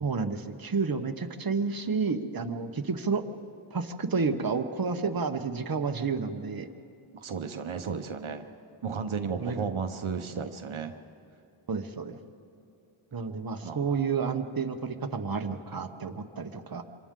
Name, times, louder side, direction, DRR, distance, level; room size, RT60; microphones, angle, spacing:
voice 1, 0.0-3.2 3.7-6.7 9.4-9.6 11.7-12.2 13.1-16.8, right 5 dB, 45° right, 6 dB, 1.0 m, -30 dB
voice 2, 7.2-8.4 8.8-10.9 13.6-14.0, right 5 dB, 80° right, 7 dB, 0.9 m, -34 dB
27.0 x 26.0 x 3.7 m, 2.6 s
wide cardioid pair, 75°, 48 cm